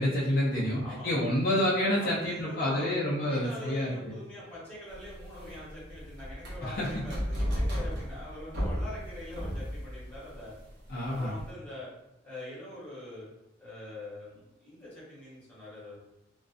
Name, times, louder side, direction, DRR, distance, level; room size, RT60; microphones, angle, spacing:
voice 1, 0.0-4.1 6.6-7.0 10.9-11.3, left 1 dB, 50° left, -6 dB, 0.4 m, -28 dB
voice 2, 0.5-1.2 2.0-10.5 11.1-11.9 12.2-13.3 13.6-16.0, left 1 dB, 10° left, -9 dB, 1.0 m, -44 dB
sound 1, 4.9-11.5, equal, 60° right, 0.8 m, -35 dB
2.4 x 2.2 x 2.4 m, 0.90 s
head